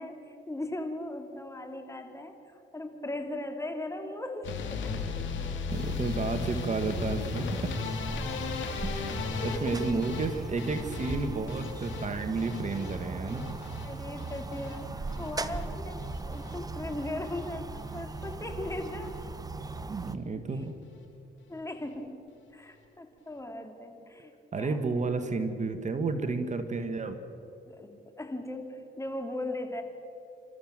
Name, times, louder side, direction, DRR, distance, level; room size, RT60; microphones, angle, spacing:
voice 1, 0.0-5.0 8.5-10.0 13.8-19.2 21.5-22.2 22.5-25.1 27.7-29.8, left 1 dB, 15° left, 5 dB, 2.8 m, -38 dB
sound 1, 4.4-16.6 16.9-17.5 17.8-18.4 18.7-18.9 19.2-19.3 19.6-19.7, left 5 dB, 70° left, 2.6 m, -37 dB
sound 2, 5.7-20.2, right 3 dB, 20° right, 0.9 m, -39 dB
voice 2, 5.7-7.7 8.8-13.4 19.9-20.7 24.5-27.2, right 3 dB, 35° right, 8 dB, 1.7 m, -32 dB
29.0 x 14.0 x 7.5 m, 2.8 s
cardioid pair, 90°, 20 cm